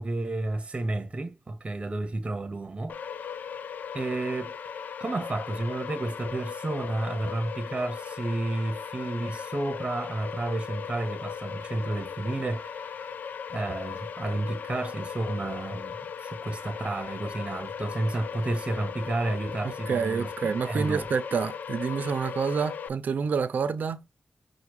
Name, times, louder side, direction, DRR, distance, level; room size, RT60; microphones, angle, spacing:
voice 1, 0.0-3.0 3.9-4.5 5.0-13.1 13.5-21.1, right 2 dB, 40° right, 0.8 m, -31 dB
sound 1, 2.9-22.9, left 7 dB, 85° left, 0.3 m, -38 dB
voice 2, 19.6-24.0, right 6 dB, 85° right, 0.5 m, -28 dB
5.7 x 2.3 x 3.0 m
cardioid pair, 60°, 3 cm